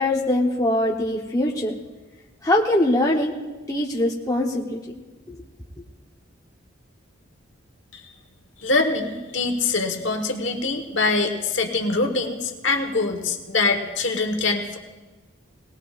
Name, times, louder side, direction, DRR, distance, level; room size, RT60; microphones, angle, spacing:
voice 1, 0.0-1.7 2.4-3.3 3.7-5.0 5.3-5.4, left 1 dB, 15° left, -2 dB, 0.9 m, -22 dB
voice 2, 8.6-14.8, left 3 dB, 65° left, 4 dB, 1.3 m, -24 dB
20.0 x 18.0 x 2.4 m, 1.2 s
head